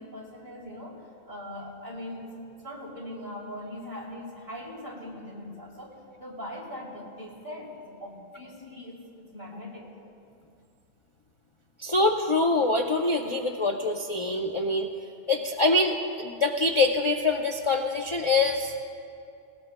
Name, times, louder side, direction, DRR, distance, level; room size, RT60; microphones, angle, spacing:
voice 1, 0.0-9.9, left 1 dB, 50° right, -4 dB, 3.3 m, -41 dB
voice 2, 11.8-14.9 15.3-18.8, left 2 dB, 35° left, 2 dB, 0.5 m, -25 dB
21.0 x 19.0 x 2.2 m, 2.6 s
omnidirectional pair, 1.2 m